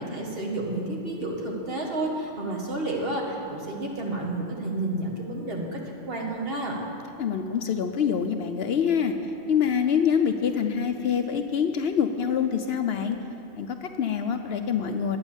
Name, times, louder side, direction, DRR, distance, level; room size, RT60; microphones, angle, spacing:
voice 1, 0.0-6.8, right 2 dB, 50° right, -1 dB, 1.7 m, -30 dB
voice 2, 7.2-9.1 9.5-13.2 13.6-15.2, left 7 dB, 65° left, 6 dB, 0.7 m, -25 dB
10.5 x 8.9 x 7.1 m, 2.8 s
omnidirectional pair, 1.3 m